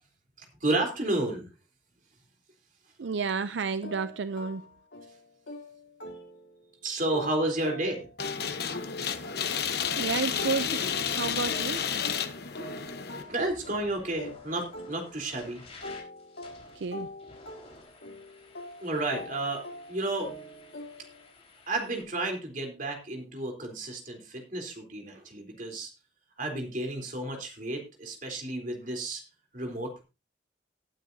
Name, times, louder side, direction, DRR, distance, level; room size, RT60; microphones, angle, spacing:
voice 1, 0.4-1.5 6.8-8.1 12.6-12.7 13.2-15.7 18.8-20.3 21.7-25.9 26.4-29.2 29.5-30.0, right 2 dB, 45° right, 3.6 m, -32 dB
voice 2, 3.0-4.7 10.0-11.8 16.8-17.1, right 5 dB, 70° right, 0.5 m, -31 dB
sound 1, 3.8-6.7 7.1-15.4 15.8-21.3, left 1 dB, 70° left, 3.4 m, -44 dB
sound 2, 8.2-13.2, left 7 dB, 55° left, 1.0 m, -31 dB
sound 3, 9.6-22.0, left 3 dB, 35° left, 4.2 m, -54 dB
18.5 x 9.2 x 2.7 m
head